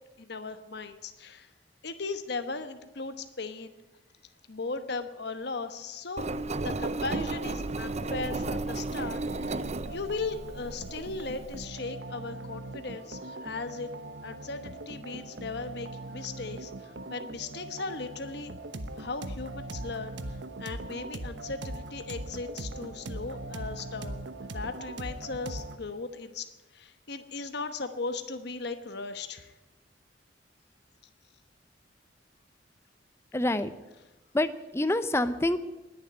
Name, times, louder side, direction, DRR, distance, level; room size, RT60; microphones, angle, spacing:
voice 1, 0.2-1.5 1.8-3.7 4.5-6.3 6.6-9.5 9.9-13.9 14.2-18.5 19.0-24.2 24.4-26.5 26.7-29.5, left 3 dB, 65° left, 9 dB, 1.1 m, -37 dB
Engine, 6.2-11.6, right 2 dB, 35° right, 0.6 m, -34 dB
sound 1, 7.2-25.8, right 2 dB, 75° right, 1.1 m, -41 dB
voice 2, 33.3-33.7 34.3-35.6, left 1 dB, 15° left, 12 dB, 0.6 m, -27 dB
19.5 x 7.4 x 9.8 m, 1.0 s
head